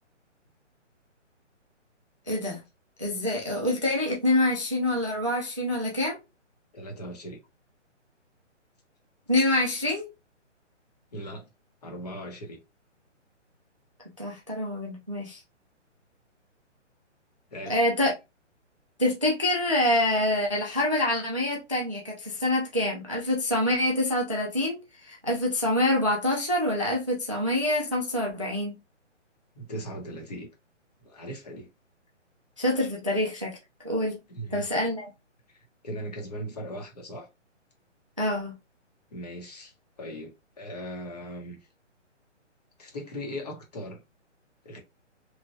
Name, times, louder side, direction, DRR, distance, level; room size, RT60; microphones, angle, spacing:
voice 1, 2.3-2.6 3.0-6.2 9.3-10.1 14.2-15.4 17.7-18.1 19.0-28.7 32.6-33.6 33.8-34.2 34.5-35.1 38.2-38.5, left 1 dB, 30° right, 0.4 m, -26 dB
voice 2, 6.7-7.4 11.1-11.4 11.8-12.6 17.5-17.8 29.5-30.5 31.0-31.7 34.3-34.7 35.5-37.3 39.1-41.6 42.8-44.0 44.6-44.8, equal, 35° left, 0.9 m, -39 dB
3.0 x 2.1 x 2.6 m
hypercardioid pair, 165°, 37 cm